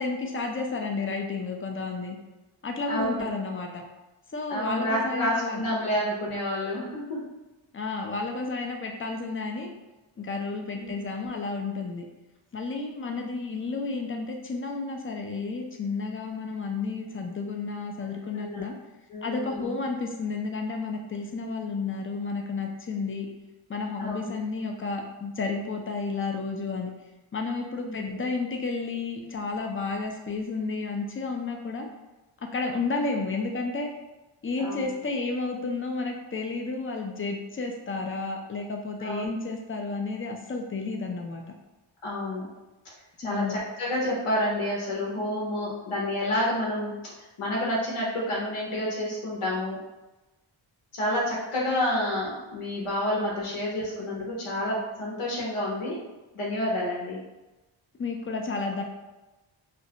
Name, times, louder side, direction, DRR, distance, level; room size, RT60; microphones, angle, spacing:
voice 1, 0.0-2.2 2.6-3.8 4.3-5.7 7.7-9.7 10.2-12.0 12.5-18.7 19.2-23.3 23.7-26.9 27.3-31.9 32.5-33.9 34.4-41.4 43.2-43.6 58.0-58.8, left 3 dB, 30° left, 2 dB, 0.3 m, -31 dB
voice 2, 2.9-3.3 4.5-7.2 10.8-10.9 11.2-11.3 18.3-18.7 19.1-19.8 24.0-24.3 27.8-28.2 34.6-34.9 39.0-39.3 42.0-42.5 42.8-42.9 43.2-49.8 50.9-56.0 56.3-57.2, left 1 dB, 85° left, -4 dB, 0.8 m, -29 dB
2.5 x 2.0 x 2.7 m, 1.1 s
wide cardioid pair, 75°, 49 cm